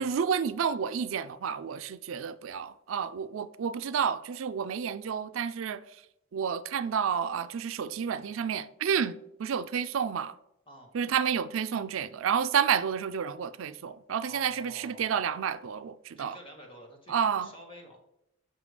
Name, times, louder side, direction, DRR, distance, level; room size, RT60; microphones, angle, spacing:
voice 1, 0.0-5.8 6.3-10.3 10.9-16.4 17.1-17.5, right 7 dB, 80° right, 0.4 m, -30 dB
voice 2, 14.2-15.2 16.2-18.0, equal, 25° left, 1.5 m, -49 dB
6.7 x 5.2 x 5.0 m
head